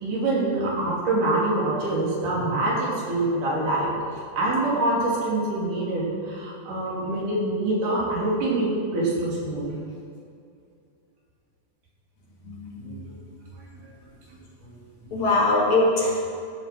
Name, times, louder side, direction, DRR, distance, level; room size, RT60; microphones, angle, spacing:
voice 1, 0.0-3.9 4.4-9.7 12.8-13.0 14.6-14.7 15.0-15.1, right 2 dB, 80° right, -5 dB, 4.8 m, -25 dB
voice 2, 12.4-13.0 15.1-16.3, left 2 dB, 60° left, -5 dB, 3.7 m, -22 dB
14.0 x 8.6 x 6.2 m, 2.5 s
omnidirectional pair, 3.7 m